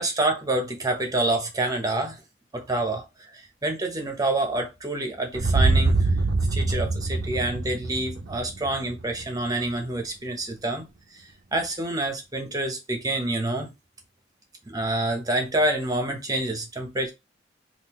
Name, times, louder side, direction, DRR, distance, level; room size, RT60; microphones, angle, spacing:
voice 1, 0.0-2.2 2.5-3.1 3.3-6.1 6.5-10.8 11.5-13.7 14.7-17.1, right 2 dB, 20° right, 0.8 m, -27 dB
sound 1, 5.3-9.4, right 3 dB, 65° right, 0.6 m, -24 dB
3.7 x 2.6 x 3.0 m
head